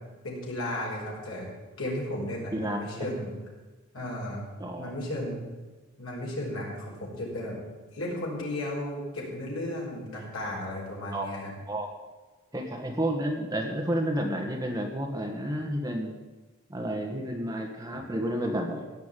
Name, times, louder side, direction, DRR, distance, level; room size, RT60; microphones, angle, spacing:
voice 1, 0.2-1.5 1.8-3.3 3.9-4.5 4.8-5.4 6.0-7.6 7.9-11.5, left 1 dB, 75° left, -3 dB, 5.2 m, -34 dB
voice 2, 2.5-3.1 4.6-4.9 11.1-11.4 11.7-11.9 12.5-16.1 16.7-18.9, right 1 dB, 15° right, 1 dB, 1.6 m, -31 dB
16.5 x 6.0 x 9.1 m, 1.3 s
head